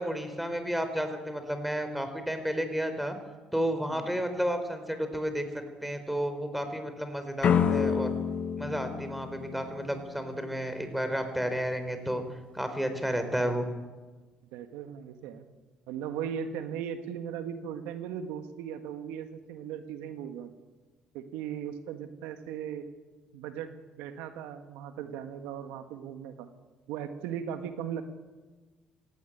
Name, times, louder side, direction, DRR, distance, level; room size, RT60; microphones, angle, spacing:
voice 1, 0.0-3.2 3.5-5.5 5.8-8.1 8.6-12.2 12.5-13.7, equal, 5° right, 8 dB, 4.4 m, -31 dB
voice 2, 3.9-4.2 14.5-15.5 15.9-20.5 21.1-22.9 23.3-26.5 26.9-28.0, right 8 dB, 80° right, 8 dB, 1.7 m, -38 dB
sound 1, 7.4-10.3, left 7 dB, 55° left, 1.7 m, -28 dB
17.0 x 16.5 x 9.4 m, 1.3 s
supercardioid pair, 65°, 2 cm